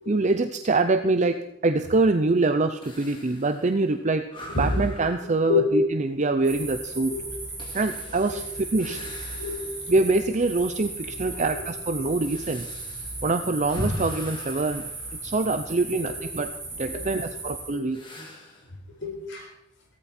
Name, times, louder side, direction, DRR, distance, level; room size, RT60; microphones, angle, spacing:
voice 1, 0.1-4.3 4.6-7.1 7.7-8.4 8.7-9.0 9.9-12.7 13.2-14.8 15.2-16.5 16.8-18.0, right 3 dB, 35° right, 9 dB, 0.6 m, -24 dB
sound 1, 2.8-10.0 10.5-10.6 11.3-15.9 17.9-18.7, left 1 dB, 25° left, 2.8 m, -40 dB
voice 2, 5.2-5.7 6.1-6.6 7.1-7.3 8.3-8.4 8.8-9.0 9.3-9.9 11.1-11.6 12.0-12.1 15.9-16.1 16.9-17.0 17.7-18.0 19.0-19.5, left 4 dB, 60° left, 1 dB, 4.7 m, -30 dB
sound 2, 6.4-17.8, right 2 dB, 10° right, 7.9 m, -37 dB
16.5 x 14.5 x 4.4 m, 0.78 s
head